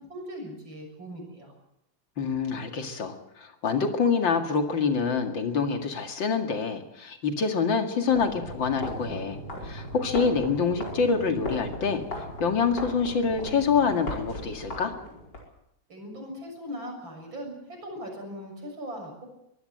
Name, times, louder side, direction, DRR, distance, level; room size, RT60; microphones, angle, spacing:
voice 1, 0.0-1.5 15.9-19.3, equal, 85° right, 2 dB, 7.6 m, -39 dB
voice 2, 2.2-12.0 12.4-14.9, left 5 dB, 75° left, 5 dB, 2.9 m, -26 dB
sound 1, 8.1-15.4, left 1 dB, 60° left, 5.4 m, -37 dB
23.0 x 15.5 x 8.0 m, 0.79 s
omnidirectional pair, 2.1 m